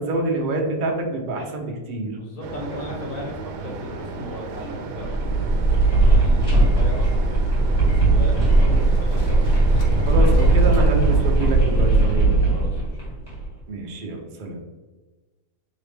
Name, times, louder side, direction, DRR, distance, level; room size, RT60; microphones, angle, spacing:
voice 1, 0.0-2.1 10.0-12.4 13.7-14.6, right 2 dB, 55° right, 2 dB, 0.5 m, -26 dB
voice 2, 2.1-9.6 12.5-13.5, left 1 dB, 55° left, -2 dB, 1.4 m, -37 dB
sound 1, 2.4-11.4, right 4 dB, 80° right, 1.2 m, -35 dB
sound 2, 5.0-13.5, right 2 dB, 15° left, 1.5 m, -18 dB
sound 3, 5.6-10.9, equal, 85° left, 1.4 m, -40 dB
4.7 x 3.1 x 3.4 m, 1.2 s
omnidirectional pair, 1.8 m